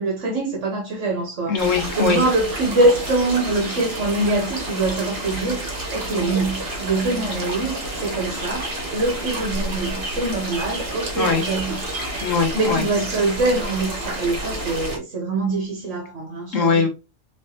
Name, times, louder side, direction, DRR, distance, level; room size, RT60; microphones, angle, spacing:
voice 1, 0.0-1.6 1.9-11.9 12.5-16.9, right 2 dB, 70° right, 1.5 m, -24 dB
voice 2, 1.5-2.2 11.2-11.4 12.2-12.8 16.5-16.9, left 4 dB, 80° left, 1.7 m, -20 dB
sound 1, 1.6-15.0, right 1 dB, 50° right, 1.8 m, -30 dB
4.5 x 4.1 x 2.8 m
omnidirectional pair, 1.3 m